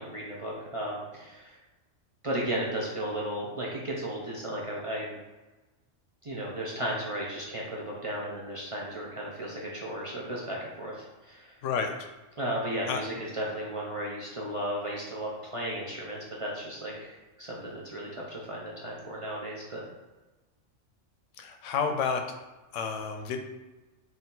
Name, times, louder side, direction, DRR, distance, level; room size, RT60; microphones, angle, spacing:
voice 1, 0.0-1.6 2.2-5.2 6.2-11.5 12.4-19.8, right 1 dB, 35° right, -4 dB, 0.6 m, -35 dB
voice 2, 11.6-12.1 12.9-13.0 21.4-22.2 22.7-23.4, left 6 dB, 75° left, 5 dB, 0.9 m, -30 dB
4.3 x 2.7 x 3.9 m, 1.1 s
omnidirectional pair, 1.3 m